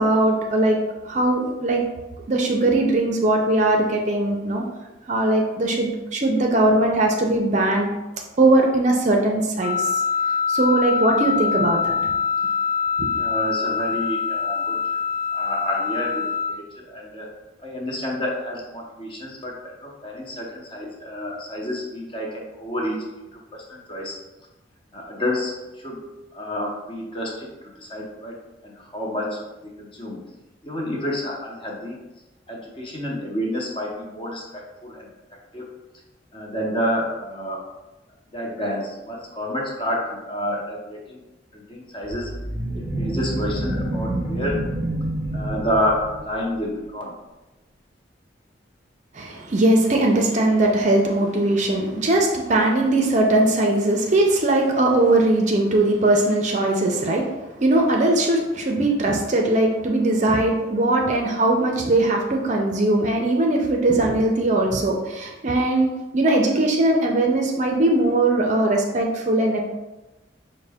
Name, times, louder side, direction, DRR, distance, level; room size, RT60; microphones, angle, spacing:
voice 1, 0.0-1.8 2.3-4.6 5.1-7.9 8.4-9.8 10.5-12.1 13.0-13.1 49.1-69.6, right 2 dB, 40° right, 1 dB, 0.5 m, -20 dB
Wind instrument woodwind instrument, 9.6-16.5, left 6 dB, 75° left, 0.6 m, -24 dB
voice 2, 13.1-14.8 15.3-17.3 17.6-23.0 23.3-24.2 24.9-28.4 28.6-30.2 30.6-32.0 32.5-35.1 35.5-35.8 36.3-37.6 38.3-41.2 41.5-42.3 42.7-44.6 45.3-47.1, equal, 30° left, -2 dB, 0.8 m, -29 dB
sound 1, 42.0-46.4, right 1 dB, 45° left, 1.3 m, -28 dB
5.3 x 2.1 x 3.4 m, 1.1 s
head